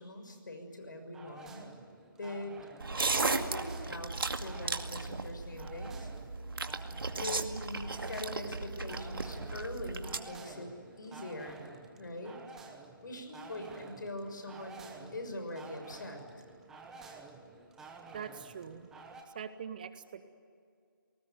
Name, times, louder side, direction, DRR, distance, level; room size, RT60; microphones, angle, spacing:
voice 1, 0.0-1.7 2.2-2.6 3.1-6.1 7.2-10.7 11.0-11.6 12.0-12.4 13.0-16.2, left 1 dB, 65° left, 6 dB, 6.4 m, -42 dB
sound 1, 1.1-19.2, right 4 dB, 5° right, 1.1 m, -52 dB
sound 2, 2.8-10.2, right 3 dB, 85° right, 2.2 m, -36 dB
voice 2, 18.1-18.9 19.3-20.2, right 7 dB, 25° right, 12 dB, 0.8 m, -43 dB
28.5 x 19.5 x 9.4 m, 2.3 s
hypercardioid pair, 170°, 11 cm